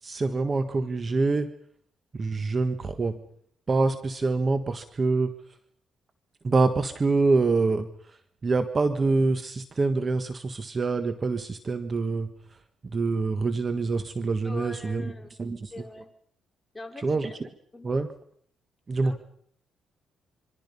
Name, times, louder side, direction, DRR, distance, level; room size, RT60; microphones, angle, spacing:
voice 1, 0.0-1.5 2.1-3.2 3.7-5.3 6.4-12.6 12.8-15.1 15.4-15.8 17.0-17.5 17.8-18.1 18.9-19.2, right 3 dB, 35° right, 9 dB, 1.6 m, -26 dB
voice 2, 14.4-15.3 15.7-16.1 16.7-17.4 17.7-18.0 19.0-19.2, left 2 dB, 15° left, 3 dB, 4.2 m, -42 dB
26.5 x 25.5 x 5.5 m, 0.64 s
cardioid pair, 90°, 0 cm